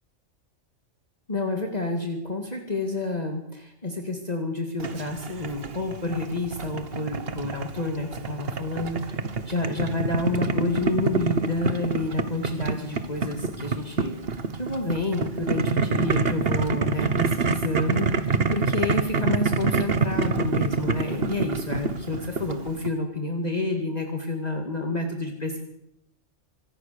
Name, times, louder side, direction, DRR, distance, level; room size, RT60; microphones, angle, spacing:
voice 1, 1.3-9.2 9.5-18.3 18.5-25.6, left 2 dB, 30° left, 3 dB, 2.3 m, -29 dB
Boiling, 4.8-22.9, right 4 dB, 55° right, 1.4 m, -27 dB
25.0 x 16.5 x 6.8 m, 0.81 s
omnidirectional pair, 1.3 m